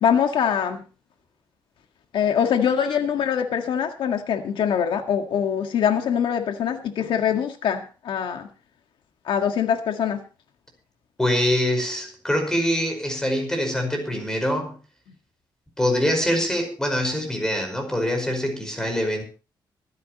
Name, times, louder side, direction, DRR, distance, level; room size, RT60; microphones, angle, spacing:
voice 1, 0.0-0.8 2.1-8.5 9.3-10.2, left 8 dB, 80° left, 5 dB, 1.8 m, -23 dB
voice 2, 11.2-14.8 15.8-19.2, equal, 5° left, 4 dB, 5.3 m, -24 dB
25.0 x 11.0 x 3.1 m, 0.34 s
wide cardioid pair, 155°, 8 cm